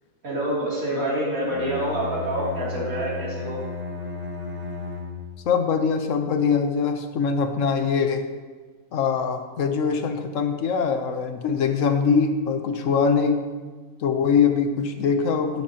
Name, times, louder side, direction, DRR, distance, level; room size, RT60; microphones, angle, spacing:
voice 1, 0.2-3.6, right 1 dB, 75° right, -7 dB, 3.3 m, -27 dB
Bowed string instrument, 1.4-5.5, left 4 dB, 15° right, 1.3 m, -33 dB
voice 2, 5.4-8.2 8.9-13.4 14.0-15.6, left 6 dB, 65° left, 7 dB, 1.1 m, -22 dB
11.0 x 9.9 x 2.9 m, 1.4 s
omnidirectional pair, 1.5 m